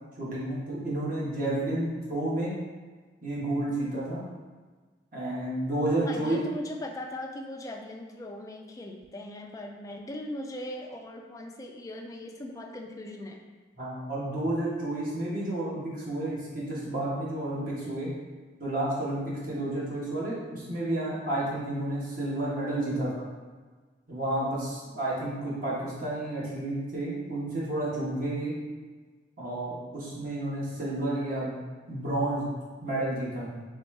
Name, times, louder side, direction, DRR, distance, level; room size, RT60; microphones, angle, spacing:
voice 1, 0.2-2.5 3.2-4.2 5.1-6.4 13.8-18.1 18.6-23.2 24.1-28.6 29.4-31.6 31.9-32.4 32.8-33.6, right 1 dB, 45° right, -7 dB, 1.3 m, -31 dB
voice 2, 6.0-13.4, left 1 dB, 15° left, 2 dB, 0.3 m, -39 dB
4.1 x 3.5 x 3.2 m, 1.4 s
head